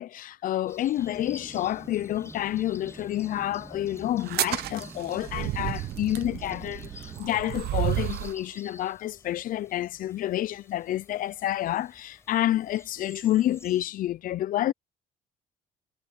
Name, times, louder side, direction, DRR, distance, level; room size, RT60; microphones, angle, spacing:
voice 1, 0.0-14.7, left 13 dB, 55° left, 0.5 m, -29 dB
sound 1, 0.7-13.8, left 3 dB, 15° left, 4.7 m, -52 dB
sound 2, 1.0-7.2, right 2 dB, 15° right, 2.4 m, -46 dB
sound 3, 4.2-8.4, right 16 dB, 70° right, 0.7 m, -31 dB
cardioid pair, 110°, 17 cm